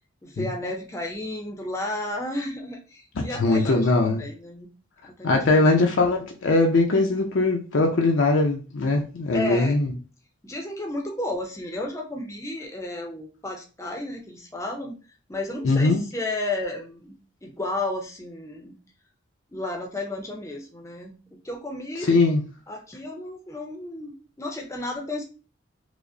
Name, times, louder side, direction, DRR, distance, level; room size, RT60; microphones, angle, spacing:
voice 1, 0.2-4.7 5.0-5.7 9.3-9.8 10.4-15.0 15.3-18.8 19.5-22.1 22.7-25.3, left 2 dB, 15° left, 0.5 m, -33 dB
voice 2, 3.2-4.2 5.2-9.9 15.6-16.0 22.0-22.4, left 2 dB, 80° left, 0.5 m, -21 dB
4.8 x 2.0 x 2.6 m
head